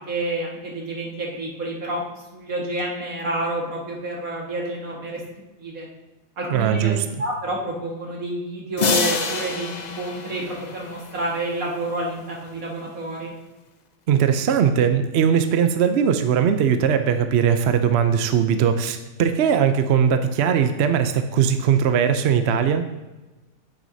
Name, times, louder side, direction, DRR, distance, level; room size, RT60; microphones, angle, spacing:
voice 1, 0.1-2.0 2.3-5.2 5.6-5.9 6.4-6.9 7.2-13.3, right 1 dB, 80° right, -2 dB, 2.2 m, -29 dB
voice 2, 6.5-7.0 14.1-22.8, right 8 dB, 60° right, 8 dB, 0.8 m, -20 dB
sound 1, 8.8-11.5, left 4 dB, 45° left, 0.6 m, -27 dB
9.2 x 9.0 x 2.7 m, 1.1 s
omnidirectional pair, 1.5 m